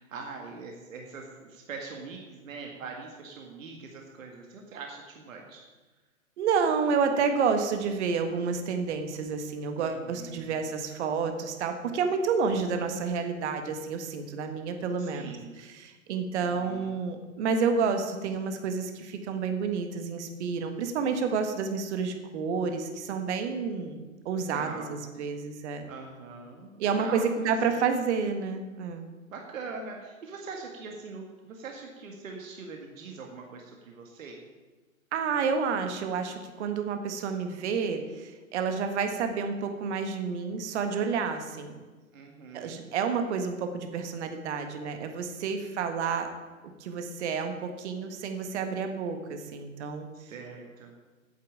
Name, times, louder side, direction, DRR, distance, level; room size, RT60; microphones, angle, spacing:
voice 1, 0.0-5.6 9.8-10.6 15.0-15.5 16.4-16.9 24.5-25.0 25.9-27.5 29.3-34.4 42.1-42.8 50.1-50.9, right 4 dB, 70° right, 1 dB, 2.0 m, -42 dB
voice 2, 6.4-25.8 26.8-29.1 35.1-41.8 42.5-46.3 46.8-50.1, right 5 dB, 55° right, 7 dB, 1.6 m, -30 dB
9.2 x 7.4 x 8.7 m, 1.3 s
hypercardioid pair, 125°, 41 cm